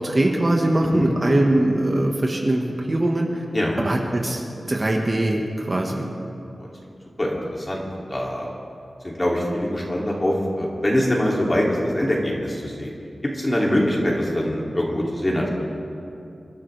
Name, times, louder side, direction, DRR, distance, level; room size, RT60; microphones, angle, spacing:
voice 1, 0.0-3.4 3.8-4.4 4.7-6.1, right 1 dB, 35° right, 1 dB, 1.4 m, -21 dB
voice 2, 7.2-8.5 9.0-12.9 13.2-15.5, left 1 dB, 25° left, -3 dB, 2.7 m, -23 dB
26.5 x 12.5 x 3.4 m, 2.7 s
wide cardioid pair, 100°, 0 cm